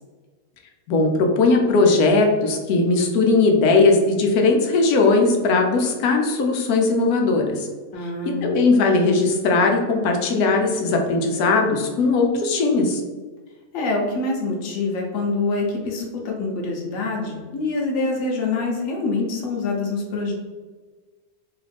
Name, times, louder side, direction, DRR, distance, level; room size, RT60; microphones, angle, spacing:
voice 1, 0.9-7.7 8.2-13.0, left 3 dB, 90° left, 2 dB, 1.1 m, -19 dB
voice 2, 7.9-8.5 13.7-20.3, left 3 dB, 65° left, -1 dB, 1.1 m, -25 dB
3.0 x 2.4 x 3.3 m, 1.4 s
omnidirectional pair, 1.6 m